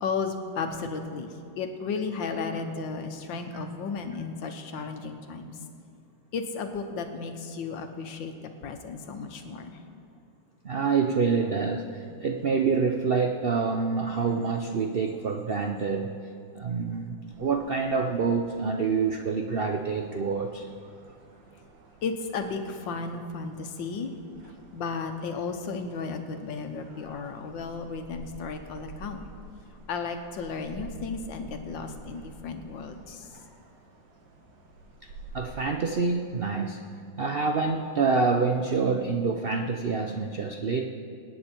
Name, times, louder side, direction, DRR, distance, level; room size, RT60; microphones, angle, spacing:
voice 1, 0.0-5.5 6.3-9.8 12.1-12.2 22.0-24.1 24.7-29.2 29.9-33.3, left 4 dB, 85° left, 6 dB, 1.8 m, -34 dB
voice 2, 10.6-16.2 16.5-20.7 35.3-40.8, right 4 dB, 85° right, 4 dB, 0.5 m, -27 dB
sound 1, 17.3-35.6, right 3 dB, 70° right, 1.9 m, -49 dB
25.0 x 9.3 x 4.5 m, 2.3 s
omnidirectional pair, 2.0 m